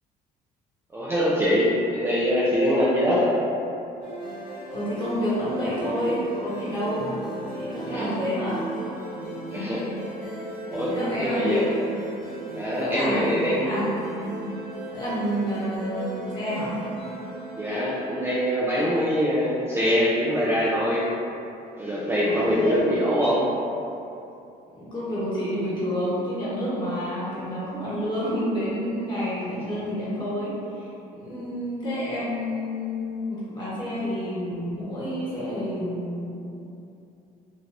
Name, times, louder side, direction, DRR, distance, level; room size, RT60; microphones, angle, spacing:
voice 1, 0.9-3.3 7.8-8.2 9.5-9.8 10.7-11.6 12.6-13.7 17.6-21.0 21.8-23.4, equal, 15° right, -8 dB, 0.4 m, -23 dB
sound 1, 4.0-18.6, right 2 dB, ahead, 1.1 m, -36 dB
voice 2, 4.7-7.1 7.5-8.7 9.5-9.8 10.9-11.7 12.8-14.3 14.9-16.8 22.2-23.0 24.7-36.4, equal, 25° left, -10 dB, 1.3 m, -29 dB
3.2 x 2.8 x 2.5 m, 2.7 s
cardioid pair, 110°, 17 cm